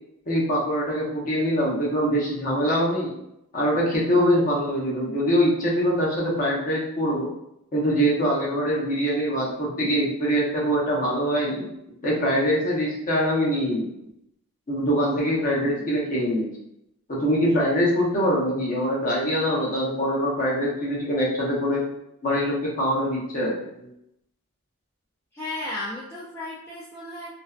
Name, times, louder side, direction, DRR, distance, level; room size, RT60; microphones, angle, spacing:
voice 1, 0.3-3.1 3.5-7.3 7.7-11.7 12.0-13.9 14.7-16.5 17.1-21.9 22.2-23.9, equal, 35° left, -4 dB, 0.7 m, -23 dB
voice 2, 25.3-27.3, left 2 dB, 10° left, -8 dB, 0.3 m, -34 dB
2.5 x 2.1 x 2.3 m, 0.80 s
head